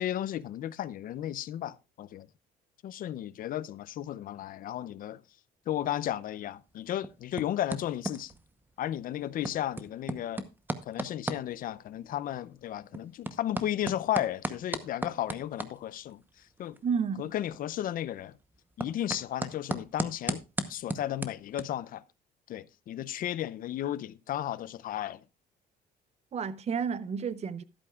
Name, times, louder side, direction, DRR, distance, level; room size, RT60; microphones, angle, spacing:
voice 1, 0.0-2.3 2.8-5.2 5.7-8.3 8.8-10.5 10.9-16.2 16.6-16.8 17.2-18.3 18.8-20.4 20.7-22.0 22.5-25.2, left 12 dB, 55° left, 0.5 m, -34 dB
sound 1, 6.5-21.6, right 2 dB, 10° right, 0.8 m, -39 dB
voice 2, 16.8-17.3 26.3-27.6, right 6 dB, 40° right, 0.7 m, -31 dB
12.5 x 11.5 x 2.3 m
cardioid pair, 110°, 17 cm